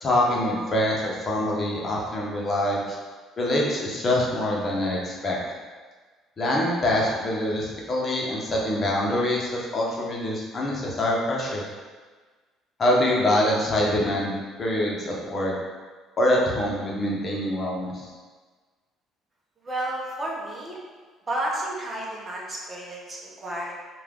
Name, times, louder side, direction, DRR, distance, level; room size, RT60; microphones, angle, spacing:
voice 1, 0.0-2.9 3.4-5.4 6.4-11.6 12.8-14.3 14.6-15.5 16.2-17.9, left 1 dB, 30° left, -3 dB, 1.0 m, -24 dB
voice 2, 19.6-20.8 21.3-23.7, right 1 dB, 25° right, -3 dB, 1.0 m, -31 dB
5.5 x 2.5 x 3.7 m, 1.4 s
cardioid pair, 110°, 0 cm